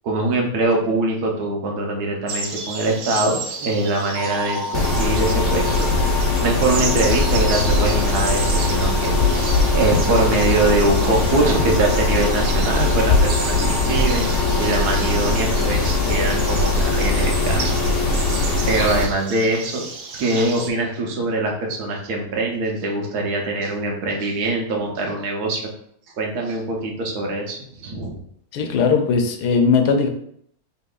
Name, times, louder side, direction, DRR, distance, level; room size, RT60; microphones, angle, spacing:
voice 1, 0.0-5.9 6.4-14.3 14.6-17.8 18.7-25.7 26.2-28.2, right 2 dB, 80° right, 1 dB, 1.4 m, -23 dB
sound 1, 2.3-20.7, right 4 dB, 60° right, 0.9 m, -33 dB
sound 2, 4.1-16.3, equal, 15° right, 1.3 m, -33 dB
Mechanisms, 4.7-19.0, left 3 dB, 45° left, 0.8 m, -20 dB
voice 2, 28.5-30.1, left 5 dB, 90° left, 5 dB, 1.2 m, -18 dB
5.6 x 3.3 x 2.3 m, 0.68 s
omnidirectional pair, 1.7 m